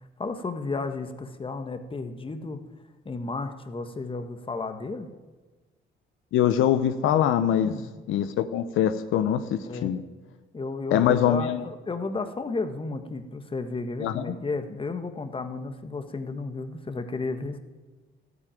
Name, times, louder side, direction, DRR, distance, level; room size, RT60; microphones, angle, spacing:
voice 1, 0.2-2.6 3.0-5.1 7.6-7.9 9.7-9.9 10.5-17.6, left 3 dB, 25° left, 8 dB, 1.5 m, -33 dB
voice 2, 6.3-7.7 8.1-10.0 10.9-11.6 14.0-14.4, left 10 dB, 85° left, 11 dB, 0.8 m, -23 dB
13.5 x 9.7 x 9.0 m, 1.2 s
cardioid pair, 90°, 20 cm